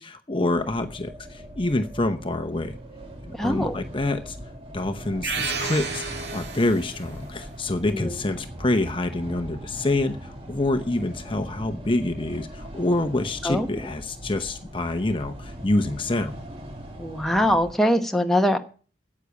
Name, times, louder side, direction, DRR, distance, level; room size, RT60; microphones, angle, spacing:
voice 1, 0.0-2.8 3.2-4.4 4.7-16.3, left 2 dB, 30° left, 8 dB, 0.8 m, -26 dB
sound 1, 0.5-17.7, equal, 30° right, 2.3 m, -40 dB
voice 2, 3.4-3.8 7.9-8.1 13.4-13.7 17.0-18.6, equal, ahead, 4 dB, 1.0 m, -22 dB
sound 2, 5.2-7.1, right 4 dB, 65° right, 1.9 m, -31 dB
9.8 x 8.5 x 8.2 m, 0.39 s
head